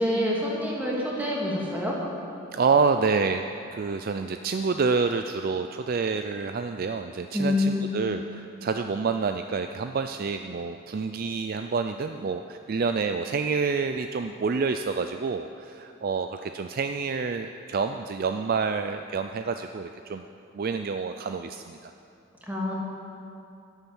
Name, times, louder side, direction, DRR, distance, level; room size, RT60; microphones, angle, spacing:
voice 1, 0.0-1.9 7.3-7.9 22.5-22.7, left 1 dB, 10° right, -4 dB, 2.4 m, -26 dB
voice 2, 2.5-20.3 20.5-21.9, right 5 dB, 45° right, 7 dB, 0.4 m, -28 dB
11.5 x 10.0 x 7.1 m, 2.6 s
head